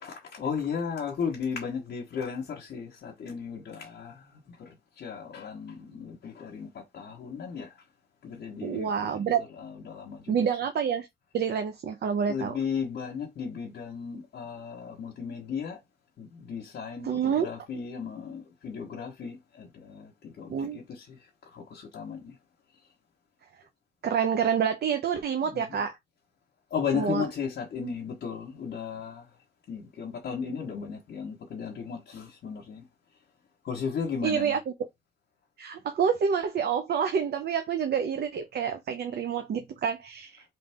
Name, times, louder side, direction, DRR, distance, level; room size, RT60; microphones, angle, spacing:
voice 1, 0.0-4.1 5.0-7.7 8.2-9.3 9.9-10.3 12.3-15.8 16.2-21.2 21.5-22.3 25.5-25.6 26.7-29.2 29.7-32.8 33.6-34.5, left 6 dB, 60° left, 1.3 m, -35 dB
voice 2, 8.6-9.4 10.3-11.1 11.3-12.6 17.0-17.5 20.5-20.8 24.0-26.0 26.9-27.2 34.2-34.7 35.6-40.4, right 7 dB, 55° right, 0.8 m, -28 dB
3.9 x 3.4 x 3.6 m
cardioid pair, 90°, 20 cm